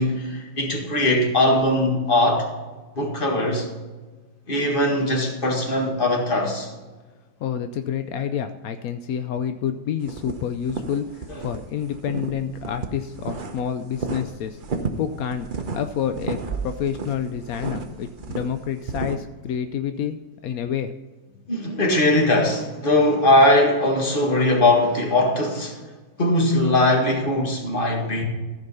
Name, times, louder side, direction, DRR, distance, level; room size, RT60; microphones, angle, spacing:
voice 1, 0.0-2.5 3.0-3.7 4.5-6.7 21.5-25.7 26.2-28.2, left 1 dB, 30° left, 1.8 m, -20 dB
voice 2, 7.4-14.6 14.9-15.5 15.7-20.2 20.4-20.9, left 8 dB, 75° left, 0.8 m, -28 dB
sound 1, 10.0-11.6 11.9-13.7 13.9-19.2, right 4 dB, 55° right, 0.5 m, -32 dB
14.5 x 5.3 x 5.5 m
omnidirectional pair, 2.1 m